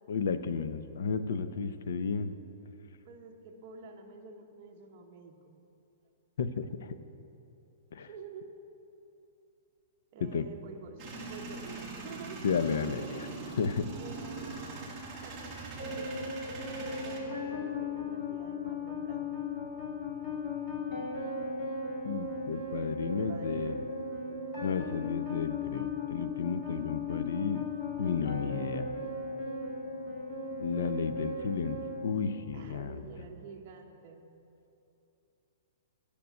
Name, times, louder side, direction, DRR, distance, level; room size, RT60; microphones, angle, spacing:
voice 1, 0.1-2.4 6.4-7.0 7.9-8.1 10.3-10.5 12.4-13.3 13.6-13.9 22.0-23.8 24.6-27.7 28.0-28.9 30.6-33.0, left 6 dB, 60° left, 11 dB, 0.6 m, -33 dB
voice 2, 3.0-5.5 8.0-8.5 10.1-13.1 14.0-14.8 15.2-19.3 21.6-21.7 23.1-23.8 32.5-34.2, right 5 dB, 30° right, 1 dB, 1.0 m, -49 dB
Male speech man speaking / Vehicle / Engine starting, 11.0-17.2, right 3 dB, 10° right, 1.3 m, -42 dB
sound 1, 15.8-32.8, left 3 dB, 25° left, 1.4 m, -37 dB
9.6 x 6.8 x 9.0 m, 2.8 s
hypercardioid pair, 180°, 0 cm